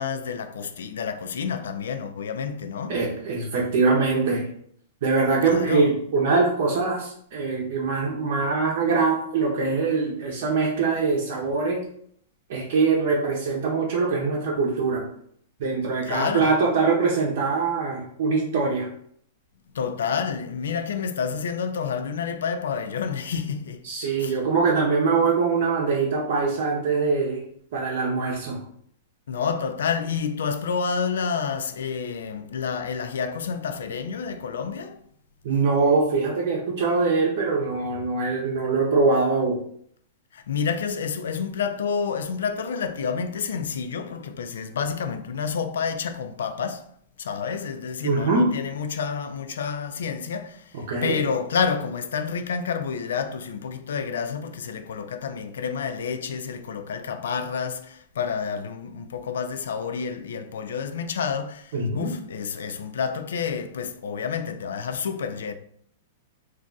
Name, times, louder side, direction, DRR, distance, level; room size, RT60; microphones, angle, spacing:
voice 1, 0.0-3.0 5.5-5.9 16.0-16.6 19.7-23.8 24.2-24.4 29.3-35.0 40.3-46.9 47.2-65.5, left 6 dB, 85° left, 0.3 m, -29 dB
voice 2, 2.9-4.4 5.0-11.8 12.5-15.0 15.6-18.9 23.8-27.4 27.7-28.6 35.4-39.6 48.0-48.5 50.9-51.2 61.7-62.1, right 4 dB, 60° right, 0.7 m, -23 dB
2.5 x 2.2 x 3.8 m
hypercardioid pair, 155°, 0 cm